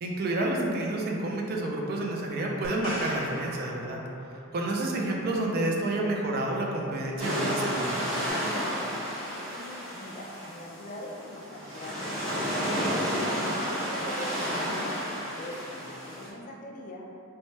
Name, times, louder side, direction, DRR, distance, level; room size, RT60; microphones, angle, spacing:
voice 1, 0.0-4.0 4.3-8.0, right 2 dB, 50° right, -1 dB, 0.3 m, -29 dB
sound 1, 2.6-4.6 8.3-8.4, left 1 dB, 70° left, 0.8 m, -40 dB
sound 2, 7.2-16.3, equal, ahead, 1.0 m, -31 dB
voice 2, 9.5-17.1, left 1 dB, 40° left, -1 dB, 0.3 m, -43 dB
3.1 x 2.1 x 2.7 m, 2.6 s
head